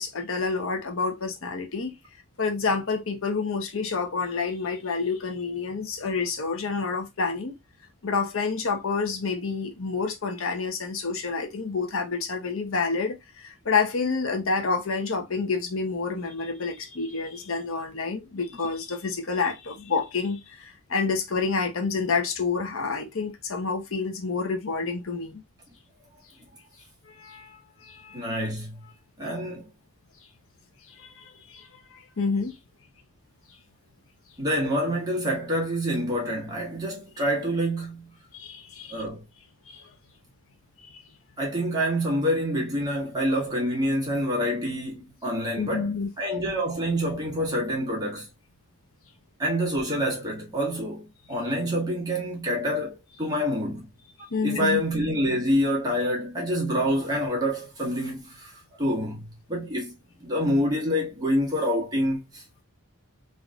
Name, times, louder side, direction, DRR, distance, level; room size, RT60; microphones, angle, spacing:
voice 1, 0.0-1.9 2.4-7.6 8.0-25.4 27.1-28.2 30.9-32.6 38.3-39.0 39.7-39.9 40.9-41.0 45.6-46.1 54.3-54.8, left 4 dB, 70° left, 0.8 m, -29 dB
voice 2, 28.1-28.8 29.2-29.7 34.4-38.1 38.9-39.2 41.4-45.9 46.2-48.3 49.4-53.9 54.4-59.9 60.2-62.4, equal, 20° right, 1.4 m, -27 dB
3.5 x 3.0 x 2.4 m
head